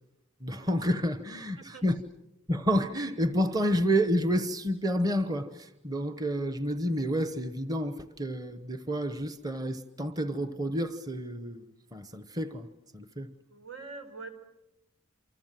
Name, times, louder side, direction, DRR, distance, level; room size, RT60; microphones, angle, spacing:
voice 1, 0.4-2.0 2.5-12.7 12.9-13.3, equal, 20° right, 1.0 m, -29 dB
voice 2, 13.5-14.3, right 3 dB, 85° right, 4.6 m, -43 dB
28.5 x 25.0 x 7.6 m
head